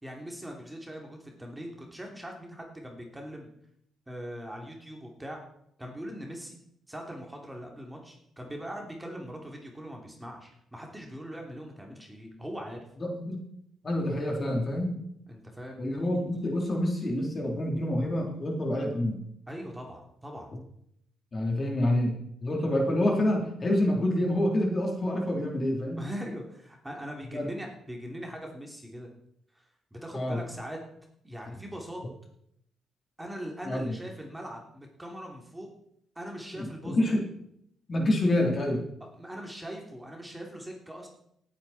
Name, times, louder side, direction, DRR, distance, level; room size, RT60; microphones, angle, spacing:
voice 1, 0.0-3.5 4.1-5.4 5.8-6.6 6.9-12.8 15.3-15.8 19.5-20.5 26.0-29.1 29.5-29.6 29.9-30.8 31.2-32.0 33.2-35.7 36.1-37.2 39.0-41.1, equal, 10° right, 1 dB, 2.9 m, -41 dB
voice 2, 13.0-13.4 13.8-15.0 15.8-19.2 21.3-26.0 27.3-27.5 30.1-30.4 33.6-33.9 36.5-37.3 37.9-38.8, left 1 dB, 35° left, 1 dB, 3.3 m, -27 dB
18.0 x 9.1 x 4.3 m, 0.73 s
cardioid pair, 90°, 0 cm